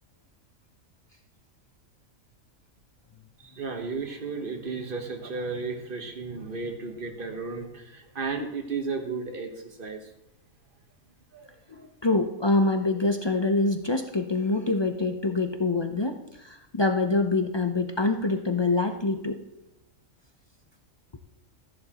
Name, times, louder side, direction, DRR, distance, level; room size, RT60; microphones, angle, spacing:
voice 1, 3.4-10.0 11.3-11.5 11.8-11.9, right 4 dB, 40° right, 4 dB, 1.3 m, -34 dB
voice 2, 11.7-19.4, left 3 dB, 35° left, 5 dB, 0.4 m, -25 dB
13.5 x 11.0 x 3.0 m, 0.92 s
omnidirectional pair, 1.4 m